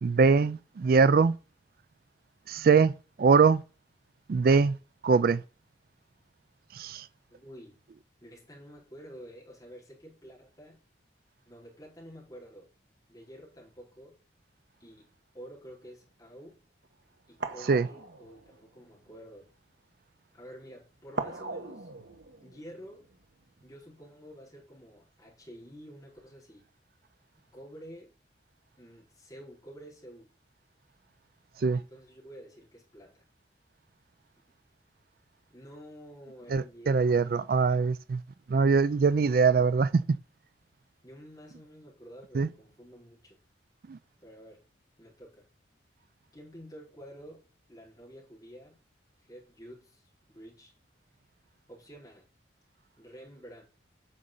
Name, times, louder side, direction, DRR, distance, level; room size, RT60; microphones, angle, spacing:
voice 1, 0.0-1.3 2.5-2.9 3.2-3.6 4.3-4.8 5.0-5.4 6.7-7.1 17.7-17.9 31.6-31.8 36.5-38.2 38.5-40.2 42.3-42.5 43.9-44.0, right 5 dB, 50° right, 0.3 m, -23 dB
voice 2, 7.3-7.8 8.2-10.8 11.5-12.7 13.1-14.2 14.8-15.1 15.3-16.6 17.3-19.5 20.3-21.9 22.4-23.0 23.6-26.6 27.5-28.1 28.8-30.3 31.7-33.2 35.5-37.3 41.0-43.4 44.2-44.6 45.0-45.5 46.3-47.4 47.7-48.8 49.2-50.7 51.7-52.3 53.0-53.6, equal, 20° left, 4.5 m, -49 dB
sound 1, 15.8-16.0 16.8-16.9 17.4-19.1 21.1-23.7 24.0-24.1, right 3 dB, 75° right, 1.3 m, -40 dB
9.4 x 6.3 x 3.9 m
head